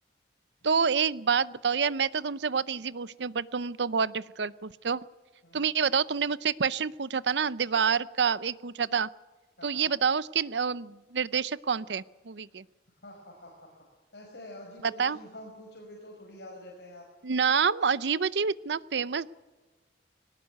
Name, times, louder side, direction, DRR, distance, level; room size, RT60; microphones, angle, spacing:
voice 1, 0.6-5.0 5.5-9.1 9.6-12.6 14.8-15.2 17.2-19.3, right 6 dB, 80° right, 18 dB, 0.7 m, -28 dB
voice 2, 9.6-9.9 13.0-17.1, left 1 dB, 80° left, -1 dB, 5.1 m, -47 dB
21.0 x 18.5 x 9.3 m, 1.2 s
head